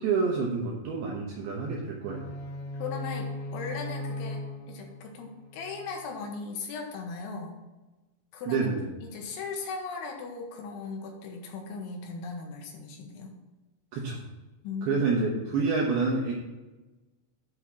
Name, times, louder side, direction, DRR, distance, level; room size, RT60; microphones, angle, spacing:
voice 1, 0.0-2.2 8.5-8.9 13.9-14.2 14.8-16.3, right 4 dB, 75° right, -2 dB, 2.3 m, -28 dB
sound 1, 2.0-6.0, left 1 dB, 60° left, 1.9 m, -38 dB
voice 2, 2.8-7.6 8.3-8.8 9.0-13.3 14.6-15.4, left 4 dB, 80° left, 2 dB, 3.5 m, -38 dB
9.9 x 3.5 x 7.1 m, 1.1 s
omnidirectional pair, 5.7 m